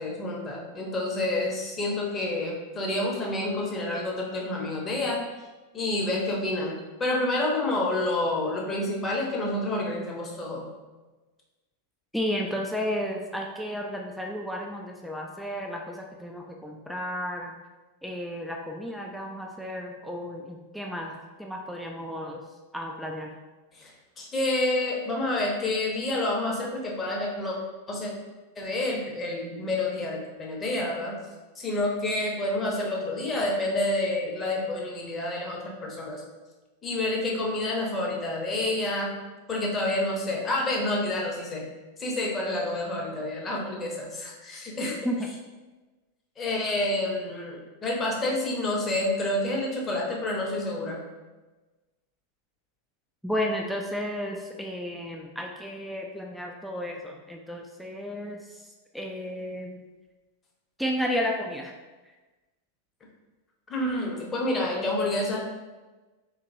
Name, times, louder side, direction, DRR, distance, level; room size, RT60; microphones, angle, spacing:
voice 1, 0.0-5.2 5.7-10.7 23.7-27.6 27.9-28.1 28.6-31.2 31.6-36.2 36.8-39.1 39.5-41.7 42.0-45.0 46.4-51.0 63.7-65.4, left 2 dB, 20° left, -2 dB, 0.8 m, -28 dB
voice 2, 12.1-17.5 18.0-22.4 22.7-23.4 45.0-45.3 53.2-58.6 58.9-59.8 60.8-61.7, equal, ahead, 0 dB, 0.3 m, -33 dB
3.9 x 2.9 x 2.6 m, 1.2 s
figure-of-eight pair, 90°, 0 cm